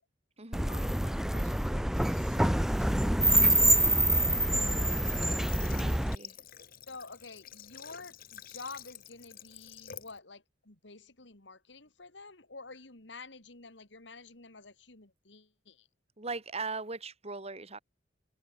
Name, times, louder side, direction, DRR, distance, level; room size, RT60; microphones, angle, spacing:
sound 1, 0.5-6.1, right 1 dB, ahead, 0.4 m, -26 dB
voice 1, 0.6-5.3 5.8-6.3 6.9-15.9, left 3 dB, 70° left, 2.7 m, -50 dB
voice 2, 3.3-3.8 5.6-6.3 16.2-17.8, right 4 dB, 35° right, 2.6 m, -40 dB
Water / Water tap faucet, 5.0-10.2, left 9 dB, 50° left, 1.7 m, -49 dB
head